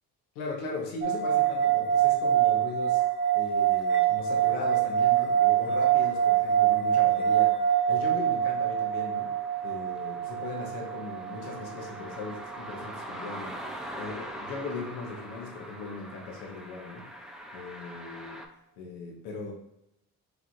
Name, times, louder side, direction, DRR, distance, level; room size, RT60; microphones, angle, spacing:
voice 1, 0.3-3.0 3.3-7.6 7.9-9.3 9.6-13.6 14.0-17.1 17.5-18.4 18.8-19.5, left 4 dB, 85° left, 0 dB, 0.7 m, -38 dB
sound 1, 1.0-12.4, right 10 dB, 30° right, 0.8 m, -25 dB
sound 2, 3.8-18.5, equal, ahead, 0.3 m, -45 dB
4.3 x 2.4 x 2.4 m, 0.83 s
hypercardioid pair, 50°, 44 cm